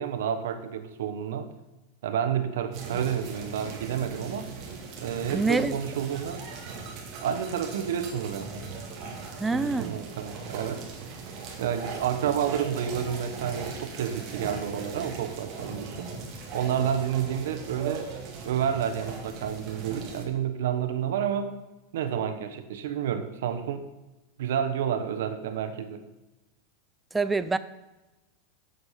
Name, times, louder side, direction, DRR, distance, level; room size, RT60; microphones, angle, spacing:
voice 1, 0.0-1.5 2.0-4.5 5.0-6.4 7.2-8.5 9.5-10.8 11.6-16.1 16.5-18.1 18.4-21.5 21.9-23.9 24.4-26.0, right 8 dB, 80° right, 8 dB, 1.1 m, -30 dB
sound 1, 2.7-20.2, right 4 dB, 35° right, 2.1 m, -39 dB
voice 2, 5.3-5.8 9.4-10.0 27.1-27.6, right 3 dB, 10° right, 13 dB, 0.4 m, -25 dB
8.2 x 7.8 x 5.7 m, 1.1 s
supercardioid pair, 165°, 0 cm